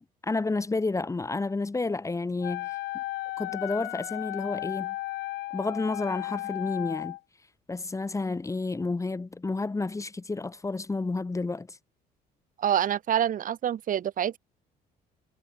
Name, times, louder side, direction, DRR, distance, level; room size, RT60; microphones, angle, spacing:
voice 1, 0.2-3.0 3.4-4.9 5.5-7.2 7.7-11.8, left 3 dB, 20° left, 5.1 m, -30 dB
Wind instrument woodwind instrument, 2.4-7.2, left 18 dB, 85° left, 6.3 m, -35 dB
voice 2, 12.6-14.4, right 10 dB, 55° right, 2.8 m, -26 dB
cardioid pair, 110°, 17 cm